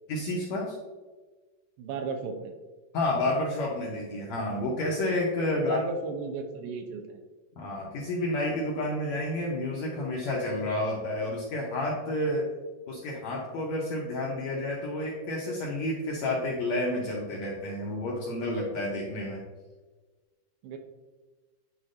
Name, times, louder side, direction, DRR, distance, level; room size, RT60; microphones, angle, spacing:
voice 1, 0.1-0.7 2.9-5.8 7.6-12.4 12.9-19.4, left 1 dB, 70° left, -3 dB, 1.7 m, -30 dB
voice 2, 1.8-2.5 5.6-7.2 20.6-20.8, right 4 dB, 90° right, 4 dB, 2.6 m, -35 dB
10.5 x 4.3 x 2.6 m, 1.3 s
omnidirectional pair, 4.3 m